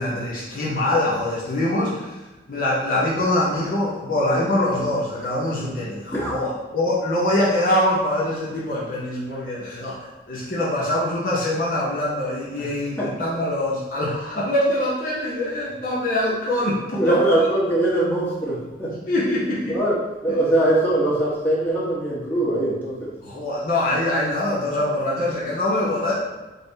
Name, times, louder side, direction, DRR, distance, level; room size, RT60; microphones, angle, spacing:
voice 1, 0.0-2.1 2.5-17.1 19.1-19.8 20.3-20.4 23.2-26.1, left 1 dB, 50° left, -6 dB, 0.7 m, -24 dB
voice 2, 16.9-19.0 19.7-23.1 25.8-25.9, right 1 dB, 10° left, -8 dB, 1.0 m, -22 dB
4.0 x 2.1 x 3.9 m, 1.2 s
head